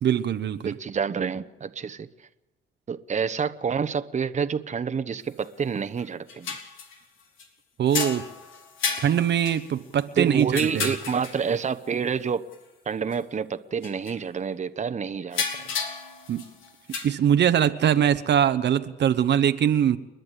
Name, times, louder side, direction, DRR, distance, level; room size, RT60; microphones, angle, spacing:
voice 1, 0.0-0.7 7.8-8.3 9.0-10.9 16.3-16.5 17.0-20.0, right 9 dB, 60° right, 11 dB, 0.9 m, -22 dB
voice 2, 0.6-2.1 2.9-6.5 10.2-12.5 12.9-15.4, right 6 dB, 35° right, 11 dB, 1.0 m, -28 dB
sound 1, 5.4-5.5 6.0-7.5 7.9-11.7 12.5-12.6 12.9-13.1 13.8-14.2 15.2-17.1, left 5 dB, 80° left, 3.3 m, -33 dB
30.0 x 10.5 x 8.2 m, 1.1 s
cardioid pair, 90°, 20 cm